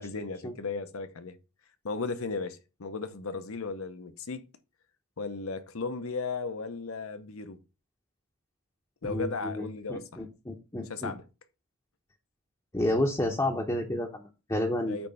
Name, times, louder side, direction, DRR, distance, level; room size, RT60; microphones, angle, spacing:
voice 1, 0.0-1.4 1.8-4.5 5.2-7.6 9.0-10.2 10.8-11.2 14.9-15.1, left 4 dB, 75° left, 0.9 m, -35 dB
voice 2, 9.0-11.1 12.7-15.0, left 1 dB, 15° left, 0.8 m, -30 dB
8.8 x 3.3 x 5.4 m
head